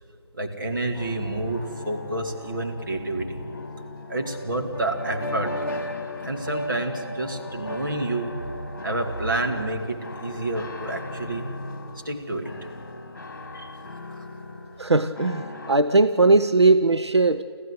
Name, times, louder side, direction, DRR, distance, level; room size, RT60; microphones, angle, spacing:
voice 1, 0.3-3.4 4.1-5.7 6.2-8.3 8.8-11.5 12.0-12.5 13.5-13.7, right 2 dB, 50° right, 3 dB, 2.5 m, -29 dB
sound 1, 0.9-12.2 12.4-14.8 15.2-15.8, left 1 dB, 40° left, 2.0 m, -37 dB
voice 2, 14.8-17.4, right 3 dB, 85° right, 10 dB, 0.7 m, -19 dB
25.5 x 15.0 x 8.1 m, 2.5 s
figure-of-eight pair, 160°, 14 cm